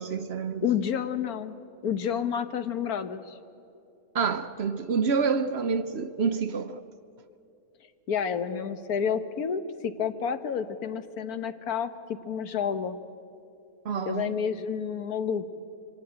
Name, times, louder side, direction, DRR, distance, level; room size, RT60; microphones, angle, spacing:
voice 1, 0.0-0.6 4.1-6.8 13.8-14.3, right 5 dB, 55° right, 0.9 m, -28 dB
voice 2, 0.6-3.4 8.1-13.0 14.1-15.5, left 7 dB, 85° left, 1.5 m, -30 dB
25.0 x 17.5 x 8.7 m
omnidirectional pair, 1.5 m